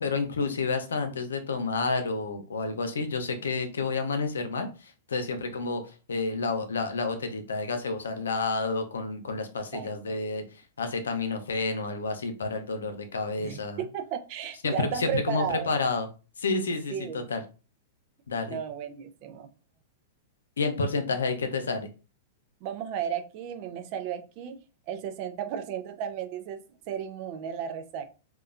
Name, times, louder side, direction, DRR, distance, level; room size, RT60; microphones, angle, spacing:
voice 1, 0.0-4.7 5.1-5.8 6.1-10.4 10.8-13.8 14.6-16.1 16.4-16.9 17.3-17.4 18.3-18.6 20.6-21.9, left 4 dB, 90° left, 0.5 m, -29 dB
voice 2, 9.7-10.2 13.4-13.6 13.9-15.7 16.9-17.3 18.5-19.5 22.6-24.6 24.9-28.1, right 8 dB, 50° right, 0.4 m, -34 dB
3.0 x 2.2 x 2.4 m
hypercardioid pair, 120°, 0 cm